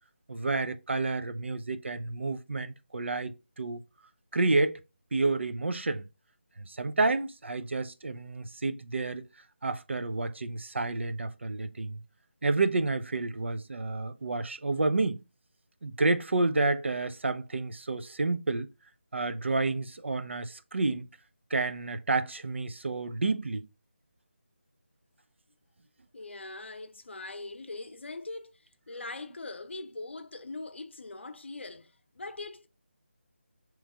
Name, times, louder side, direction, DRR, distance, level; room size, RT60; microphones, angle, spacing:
voice 1, 0.3-3.8 4.3-4.8 5.1-6.1 6.7-9.2 9.6-12.0 12.4-15.2 15.8-18.7 19.1-21.1 21.5-23.7, right 3 dB, 70° right, 0.5 m, -30 dB
voice 2, 26.1-32.7, left 2 dB, 70° left, 0.7 m, -41 dB
3.3 x 3.1 x 4.7 m
figure-of-eight pair, 170°, 7 cm